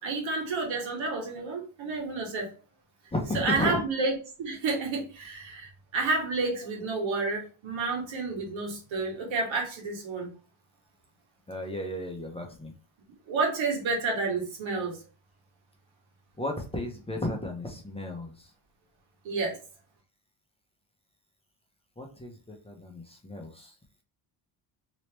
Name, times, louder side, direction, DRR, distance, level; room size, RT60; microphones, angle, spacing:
voice 1, 0.0-2.5 3.3-4.1 4.4-10.3 13.3-15.0 19.2-19.6, right 3 dB, 80° right, 1 dB, 1.4 m, -30 dB
voice 2, 3.1-3.8 11.5-12.7 16.4-18.5 22.0-23.7, left 1 dB, 10° left, 2 dB, 0.8 m, -34 dB
3.0 x 2.9 x 3.3 m, 0.35 s
cardioid pair, 100°, 47 cm